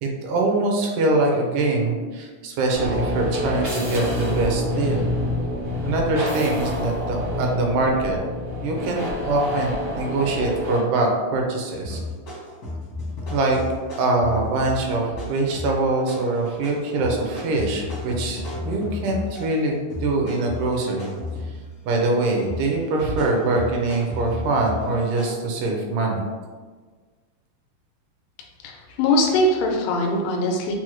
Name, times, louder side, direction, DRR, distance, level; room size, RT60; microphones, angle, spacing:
voice 1, 0.0-5.1 5.8-8.2 8.6-12.0 13.3-13.6 14.0-21.1 21.9-26.3, right 2 dB, 80° right, 0 dB, 2.1 m, -23 dB
sound 1, 2.7-10.8, left 1 dB, 55° right, 0.7 m, -27 dB
sound 2, 11.8-19.6 19.9-22.1 22.4-25.3, left 2 dB, 65° left, 0.9 m, -34 dB
voice 2, 28.6-30.8, left 1 dB, 90° left, 1 dB, 2.3 m, -21 dB
5.9 x 2.0 x 3.0 m, 1.4 s
omnidirectional pair, 3.7 m